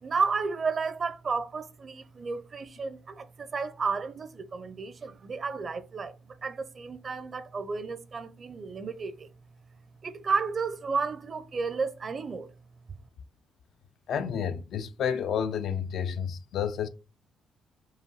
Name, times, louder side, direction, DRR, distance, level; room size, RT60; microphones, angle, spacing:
voice 1, 0.0-9.3 10.0-12.5, right 4 dB, 45° right, 0.5 m, -32 dB
voice 2, 14.1-16.9, left 7 dB, 70° left, 0.4 m, -30 dB
4.8 x 2.6 x 2.9 m
cardioid pair, 90°, 0 cm